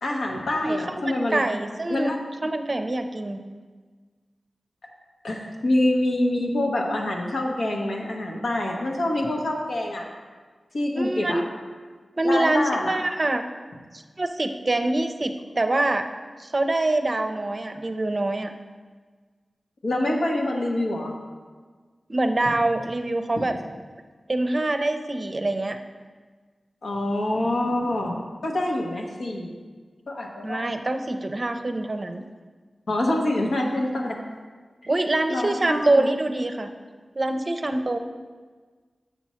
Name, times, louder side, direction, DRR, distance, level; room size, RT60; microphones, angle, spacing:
voice 1, 0.0-1.4 1.9-2.5 5.2-10.1 10.7-11.4 12.2-13.0 19.8-21.1 23.4-23.5 26.8-28.2 28.4-29.5 30.1-30.7 32.9-34.2 35.3-36.1, left 1 dB, 90° left, -1 dB, 1.1 m, -26 dB
voice 2, 0.6-2.1 2.4-3.4 10.9-11.4 12.2-13.4 13.9-16.1 16.4-18.5 22.1-23.5 24.3-25.8 30.4-32.2 34.9-36.7 37.2-38.0, right 2 dB, 40° right, 7 dB, 0.5 m, -25 dB
6.8 x 6.1 x 4.3 m, 1.5 s
wide cardioid pair, 60°, 0 cm